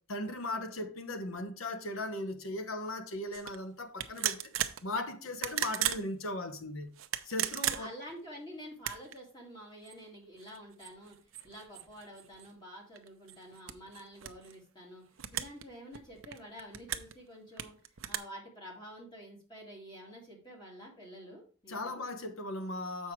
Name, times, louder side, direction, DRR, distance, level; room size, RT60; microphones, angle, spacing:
voice 1, 0.0-4.5 4.8-6.9 7.2-7.9 21.7-23.1, left 1 dB, 80° left, 1.1 m, -38 dB
sound 1, 3.3-3.6 4.0-4.8 5.3-6.0 7.0-8.1 8.7-9.2 9.9-10.0 10.4-12.5 13.0-14.5 15.2-15.6 15.9-17.1 17.6-18.2, right 11 dB, 70° right, 0.6 m, -36 dB
voice 2, 7.7-11.2 11.4-15.0 15.3-17.8 18.1-22.0, equal, 20° left, 2.4 m, -49 dB
7.3 x 5.6 x 4.7 m
head